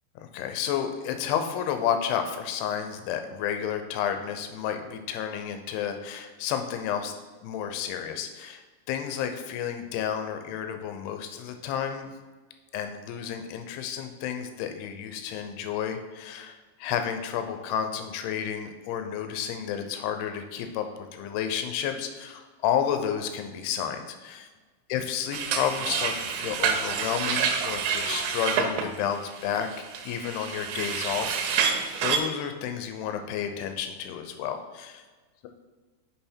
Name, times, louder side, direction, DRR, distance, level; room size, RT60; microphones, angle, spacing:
voice 1, 0.3-7.1 7.4-12.1 12.7-24.5 24.9-29.7 30.0-35.0, left 8 dB, 85° left, 7 dB, 2.7 m, -31 dB
sound 1, 25.3-32.2, right 7 dB, 80° right, 2.6 m, -28 dB
6.3 x 5.6 x 4.4 m, 1.3 s
omnidirectional pair, 4.7 m